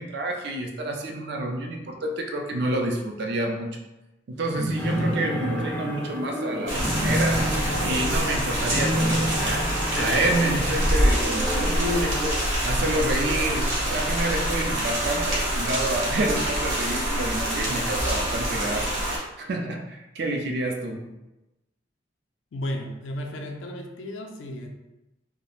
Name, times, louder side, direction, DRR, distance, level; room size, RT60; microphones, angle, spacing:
voice 1, 0.0-3.8 4.3-7.5 7.8-12.4 12.6-18.9 19.4-21.0, right 1 dB, 60° right, 2 dB, 0.4 m, -28 dB
sound 1, 4.4-10.5, equal, 35° right, 0.8 m, -29 dB
sound 2, 4.8-12.4, equal, 10° left, 0.4 m, -34 dB
sound 3, 6.7-19.2, equal, 85° right, 0.8 m, -26 dB
voice 2, 22.5-24.7, left 1 dB, 85° left, 2 dB, 0.4 m, -34 dB
2.3 x 2.0 x 3.0 m, 0.98 s
head